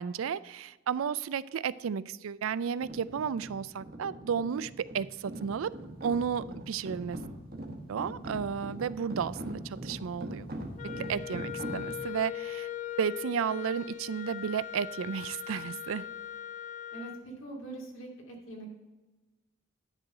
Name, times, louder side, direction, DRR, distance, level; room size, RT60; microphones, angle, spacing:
voice 1, 0.0-5.7 6.0-7.2 7.9-10.5 11.0-12.7 13.0-16.1, right 7 dB, 85° right, 18 dB, 0.4 m, -33 dB
sound 1, 2.8-12.2, right 1 dB, 50° right, 1.2 m, -42 dB
Wind instrument woodwind instrument, 10.8-17.2, left 11 dB, 35° left, 0.4 m, -40 dB
voice 2, 11.0-11.4 16.9-18.7, right 2 dB, 85° left, -1 dB, 2.6 m, -44 dB
10.5 x 3.9 x 7.5 m, 1.2 s
head